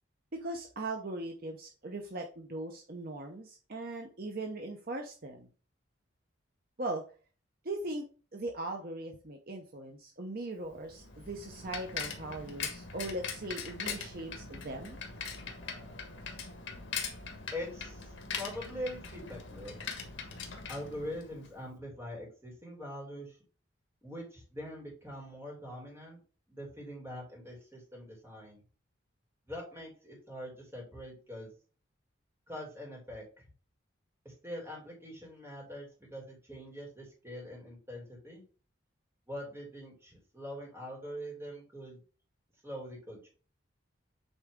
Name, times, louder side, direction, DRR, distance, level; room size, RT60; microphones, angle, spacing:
voice 1, 0.3-5.5 6.8-7.0 7.6-8.0 8.3-15.0, right 2 dB, 45° right, 3 dB, 0.8 m, -39 dB
Bicycle, 10.7-21.6, left 5 dB, 70° left, 1.6 m, -41 dB
voice 2, 17.5-19.7 20.7-23.4 24.0-26.2 26.5-28.6 29.5-31.5 32.5-33.2 34.2-38.4 39.3-42.0 42.6-43.3, equal, 10° right, -2 dB, 2.9 m, -43 dB
8.1 x 4.0 x 3.7 m, 0.38 s
head